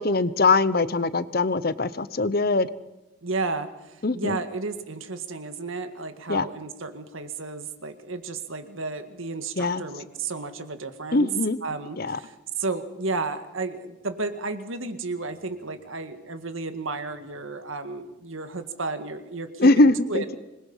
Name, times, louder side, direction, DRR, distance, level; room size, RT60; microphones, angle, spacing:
voice 1, 0.0-2.7 4.0-4.4 6.3-6.5 9.6-9.8 11.1-11.6 12.0-12.2 19.6-20.3, left 3 dB, 45° left, 15 dB, 0.8 m, -22 dB
voice 2, 3.2-11.3 11.6-20.4, right 3 dB, 75° right, 8 dB, 1.9 m, -33 dB
26.0 x 21.0 x 5.7 m, 1.0 s
head